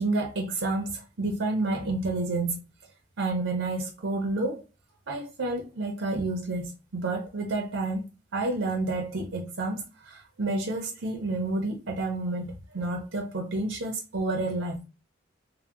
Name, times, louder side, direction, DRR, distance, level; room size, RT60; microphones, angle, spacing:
voice 1, 0.0-2.6 3.2-4.6 5.1-8.0 8.3-14.9, right 2 dB, 75° right, 0.6 m, -30 dB
2.7 x 2.1 x 3.4 m
head